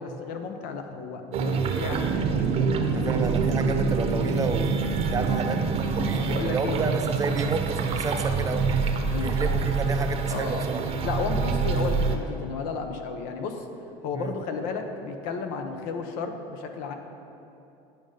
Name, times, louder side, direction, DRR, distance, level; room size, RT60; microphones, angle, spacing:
voice 1, 0.0-3.2 4.1-4.3 5.3-5.4 6.2-6.9 8.1-8.8 9.0-9.7 10.3-10.7 11.0-13.7 14.0-16.9, left 5 dB, 70° left, 5 dB, 0.9 m, -33 dB
sound 1, 1.3-12.1, right 5 dB, 40° right, 0.9 m, -26 dB
voice 2, 2.9-4.8 5.1-5.6 5.9-8.9 9.2-10.8 14.1-14.3, right 4 dB, 20° right, 6 dB, 0.5 m, -30 dB
9.6 x 5.2 x 5.4 m, 2.9 s
supercardioid pair, 120°, 15 cm